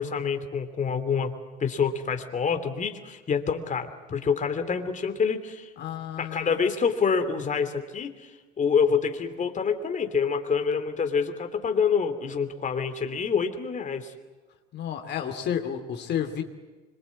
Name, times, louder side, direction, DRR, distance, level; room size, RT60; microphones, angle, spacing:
voice 1, 0.0-1.3 1.6-5.7 6.2-8.3 8.6-14.1, left 6 dB, 35° left, 7 dB, 2.8 m, -27 dB
voice 2, 5.8-6.5 14.7-16.4, left 9 dB, 55° left, 5 dB, 2.6 m, -31 dB
25.0 x 23.0 x 8.4 m, 1.3 s
hypercardioid pair, 70°, 21 cm